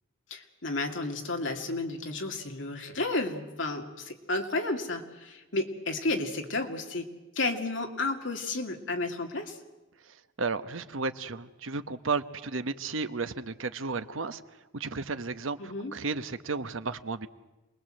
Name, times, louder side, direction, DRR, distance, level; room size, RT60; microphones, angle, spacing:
voice 1, 0.3-7.1 7.4-9.6 15.6-15.9, left 2 dB, 65° left, 3 dB, 2.6 m, -32 dB
voice 2, 10.1-14.4 14.7-17.3, right 4 dB, 75° right, 11 dB, 1.1 m, -33 dB
27.5 x 21.0 x 7.7 m, 1.1 s
head